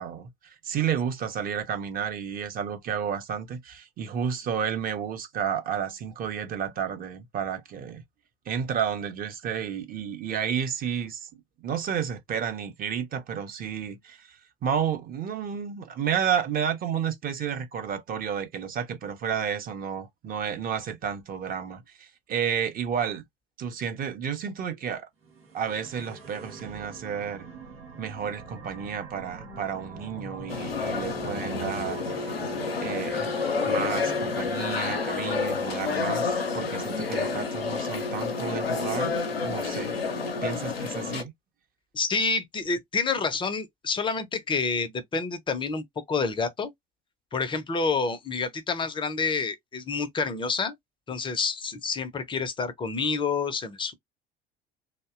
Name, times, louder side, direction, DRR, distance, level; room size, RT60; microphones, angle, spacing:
voice 1, 0.0-8.0 8.5-11.3 11.6-23.2 23.6-25.1 25.5-27.5 28.0-32.3 32.8-33.3 33.7-39.1 39.4-40.0 40.4-41.3, right 7 dB, 30° right, 0.7 m, -31 dB
sound 1, 25.2-35.4, right 3 dB, 85° right, 1.0 m, -44 dB
sound 2, 30.5-41.2, left 4 dB, 80° left, 0.6 m, -29 dB
voice 2, 41.9-46.7 47.3-50.7 51.1-53.9, left 4 dB, 15° left, 0.5 m, -28 dB
2.6 x 2.1 x 2.3 m
figure-of-eight pair, 65°, 29 cm